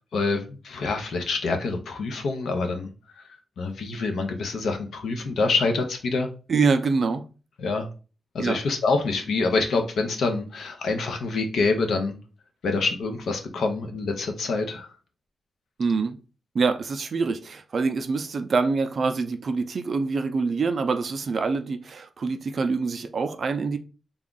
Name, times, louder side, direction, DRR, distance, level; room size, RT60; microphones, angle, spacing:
voice 1, 0.1-2.9 3.6-6.3 7.6-7.9 8.3-12.2 12.6-14.9, left 3 dB, 70° left, 0.7 m, -26 dB
voice 2, 6.5-7.2 8.4-8.6 15.8-16.2 16.5-23.8, right 4 dB, 45° right, 0.4 m, -25 dB
3.5 x 2.4 x 3.7 m
wide cardioid pair, 145°, 0 cm